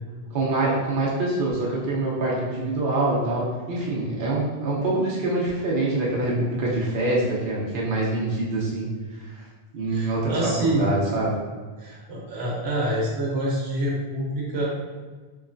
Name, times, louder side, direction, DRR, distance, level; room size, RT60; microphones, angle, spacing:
voice 1, 0.3-8.9 9.7-10.3 10.8-11.4, right 2 dB, 60° right, -6 dB, 0.9 m, -25 dB
voice 2, 9.9-10.9 11.8-14.6, right 1 dB, 80° right, -4 dB, 1.0 m, -26 dB
3.1 x 3.0 x 2.5 m, 1.4 s
omnidirectional pair, 1.1 m